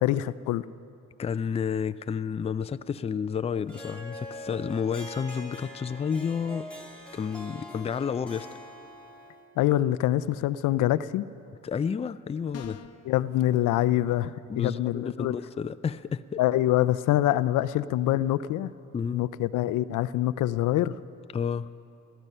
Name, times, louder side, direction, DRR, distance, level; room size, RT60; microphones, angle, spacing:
voice 1, 0.0-0.6 9.6-11.3 13.1-15.3 16.4-18.7 19.1-20.9, left 14 dB, 80° left, 15 dB, 0.5 m, -25 dB
voice 2, 1.2-6.7 7.1-8.5 11.6-12.8 14.5-16.4 18.9-19.2 21.3-21.7, left 6 dB, 20° left, 13 dB, 0.4 m, -30 dB
Harp, 3.7-9.5, left 1 dB, 5° left, 2.0 m, -43 dB
sound 1, 12.5-13.1, left 8 dB, 55° left, 0.8 m, -42 dB
18.5 x 13.5 x 5.5 m, 2.5 s
cardioid pair, 90°, 30 cm